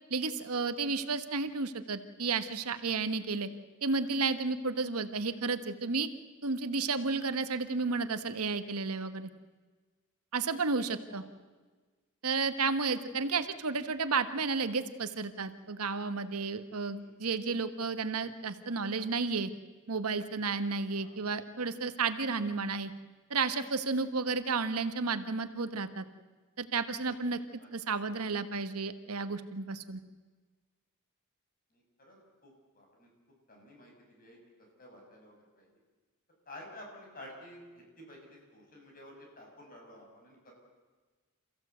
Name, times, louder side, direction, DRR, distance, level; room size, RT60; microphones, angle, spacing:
voice 1, 0.1-3.5 3.8-6.1 6.4-9.3 10.3-11.2 12.2-19.5 19.9-22.9 23.3-26.0 26.6-27.4 27.7-30.0, right 4 dB, 80° right, 10 dB, 1.3 m, -32 dB
voice 2, 31.7-33.1 33.5-34.4 34.8-35.7 36.5-40.5, left 1 dB, 40° left, 1 dB, 6.5 m, -52 dB
28.0 x 15.5 x 8.0 m, 1.4 s
head